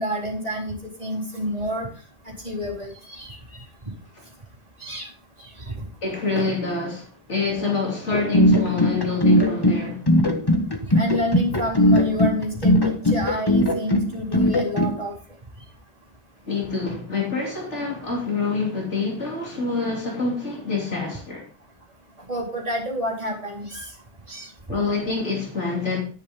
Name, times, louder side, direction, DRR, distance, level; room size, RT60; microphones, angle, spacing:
voice 1, 0.0-1.9 2.3-3.6 4.8-5.1 5.4-5.9 10.9-15.1 22.3-23.9 24.3-24.5, equal, 35° right, 4.0 m, -29 dB
voice 2, 6.0-10.0 16.5-21.5 24.7-26.0, left 4 dB, 80° left, 3.2 m, -26 dB
sound 1, 8.1-14.9, left 1 dB, 20° left, 1.5 m, -19 dB
10.5 x 10.0 x 3.6 m
omnidirectional pair, 1.2 m